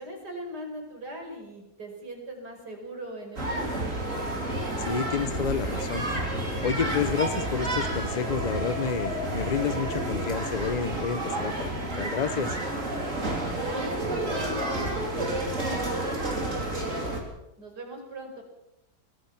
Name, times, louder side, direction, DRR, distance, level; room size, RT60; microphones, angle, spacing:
voice 1, 0.0-3.8 13.6-17.2 17.6-18.4, right 1 dB, 70° right, 3 dB, 5.8 m, -38 dB
sound 1, 3.4-17.2, right 1 dB, 45° right, 3.9 m, -30 dB
voice 2, 4.9-6.0 6.6-11.7 12.0-12.6, left 7 dB, 35° left, 15 dB, 0.7 m, -29 dB
23.5 x 20.0 x 6.0 m, 0.87 s
omnidirectional pair, 1.8 m